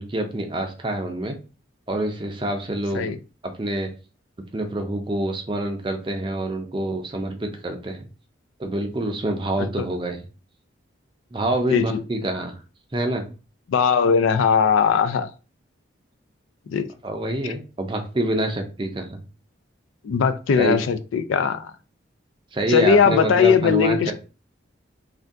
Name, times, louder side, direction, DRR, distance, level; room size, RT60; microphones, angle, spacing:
voice 1, 0.0-1.4 1.9-3.1 3.4-3.9 4.5-8.1 8.6-10.2 11.3-12.5 12.9-13.3 17.0-19.2 20.6-20.8 22.5-24.1, right 1 dB, 25° right, 0.4 m, -26 dB
voice 2, 13.7-15.3 16.7-16.9 20.0-21.7 22.7-24.1, left 6 dB, 80° left, 0.3 m, -19 dB
2.6 x 2.2 x 3.4 m
head